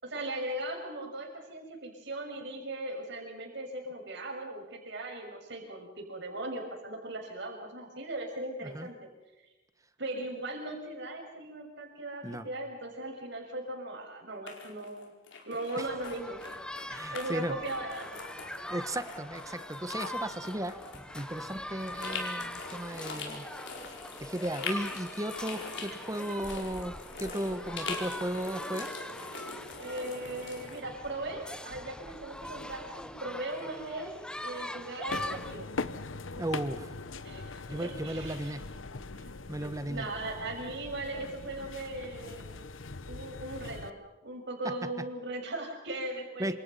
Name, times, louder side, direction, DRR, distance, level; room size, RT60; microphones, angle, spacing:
voice 1, 0.0-9.0 10.0-15.1 15.4-16.4 17.1-18.2 29.8-34.2 34.4-35.7 37.2-38.6 39.1-39.3 39.6-42.6 43.1-46.6, right 2 dB, 65° right, 3 dB, 6.7 m, -38 dB
sound 1, 14.5-17.3 17.6-30.8, left 4 dB, 65° left, 4.9 m, -43 dB
sound 2, 15.9-35.5, left 1 dB, 5° left, 0.9 m, -42 dB
voice 2, 16.9-17.6 18.7-20.8 21.1-23.5 24.2-28.9 36.4-36.9 37.7-38.7 39.5-40.1 44.6-44.7 46.4-46.5, right 1 dB, 15° right, 11 dB, 1.3 m, -35 dB
sound 3, 35.1-43.9, left 3 dB, 85° left, 1.1 m, -41 dB
28.5 x 26.5 x 5.6 m, 1.0 s
head